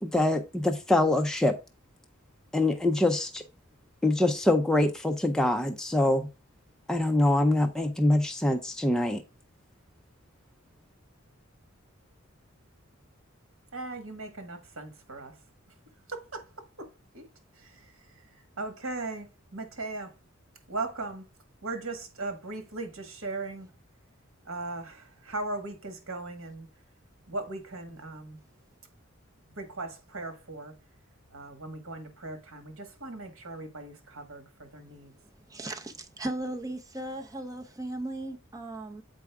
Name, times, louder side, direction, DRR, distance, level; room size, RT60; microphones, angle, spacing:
voice 1, 0.0-1.6 2.5-3.4 4.0-6.3 6.9-9.2, left 1 dB, 5° left, 0.4 m, -24 dB
voice 2, 13.7-15.7 16.1-17.3 17.5-20.2 20.7-21.3 21.6-23.7 24.4-26.7 27.3-28.4 29.5-30.7 31.3-35.1, right 2 dB, 75° right, 1.6 m, -38 dB
voice 3, 35.5-39.0, right 1 dB, 15° right, 0.8 m, -36 dB
7.5 x 4.7 x 3.5 m
head